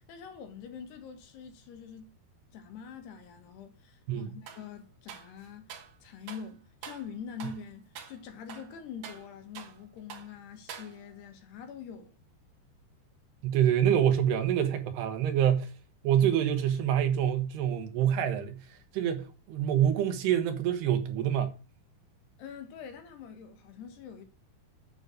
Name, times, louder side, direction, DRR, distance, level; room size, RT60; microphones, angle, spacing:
voice 1, 0.1-2.1 2.5-5.7 6.0-12.2 22.4-24.3, left 7 dB, 80° left, 3.5 m, -44 dB
sound 1, 4.5-4.7 5.1-5.9 6.3-6.5 6.8-7.1 7.4-7.6 7.9-8.2 8.5-9.8 10.1-10.3 10.7-11.2, right 7 dB, 60° right, 2.1 m, -46 dB
voice 2, 13.4-15.7 16.0-21.5, right 9 dB, 80° right, 3.3 m, -26 dB
9.4 x 6.5 x 6.4 m
omnidirectional pair, 4.7 m